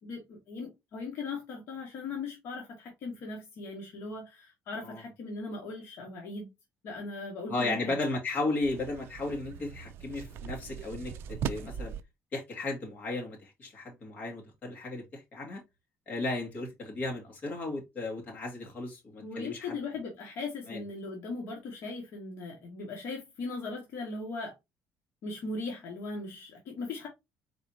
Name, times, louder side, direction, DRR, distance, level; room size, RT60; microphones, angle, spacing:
voice 1, 0.0-6.5 6.8-8.0 19.2-24.5 25.2-27.1, left 3 dB, 50° left, 1.6 m, -39 dB
voice 2, 7.5-11.9 12.3-15.6 16.1-19.8 20.7-20.8, left 2 dB, 35° left, 2.0 m, -35 dB
sound 1, 8.6-12.0, right 8 dB, 50° right, 0.4 m, -39 dB
4.5 x 4.0 x 2.7 m
cardioid pair, 170°, 5 cm